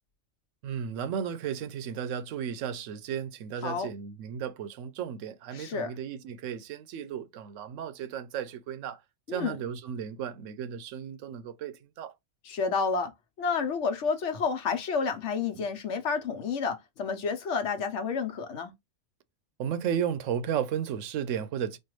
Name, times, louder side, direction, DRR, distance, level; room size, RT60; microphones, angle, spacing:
voice 1, 0.6-9.0 9.3-12.1 15.6-15.7 19.6-21.8, right 8 dB, 85° right, 0.9 m, -34 dB
voice 2, 5.5-5.9 9.3-9.6 12.5-13.1 13.4-18.7, left 5 dB, 75° left, 1.1 m, -30 dB
4.4 x 2.4 x 3.1 m
omnidirectional pair, 1.3 m